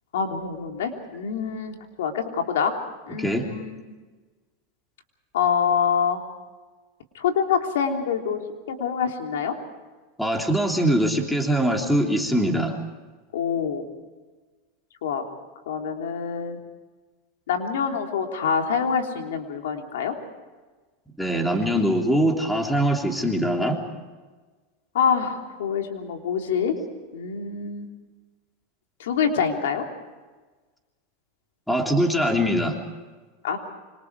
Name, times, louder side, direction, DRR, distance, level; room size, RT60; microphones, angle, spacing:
voice 1, 0.1-2.7 3.1-3.8 5.3-6.3 7.1-8.4 8.7-9.5 13.3-13.9 15.0-15.2 15.7-16.6 17.5-20.1 24.9-26.7 27.1-27.9 29.0-29.8 33.4-33.6, left 7 dB, 90° left, 3 dB, 3.3 m, -25 dB
voice 2, 10.2-12.8 21.2-23.8 31.7-32.8, equal, 5° left, 2 dB, 3.3 m, -22 dB
26.5 x 25.0 x 4.8 m, 1.3 s
supercardioid pair, 140°, 0 cm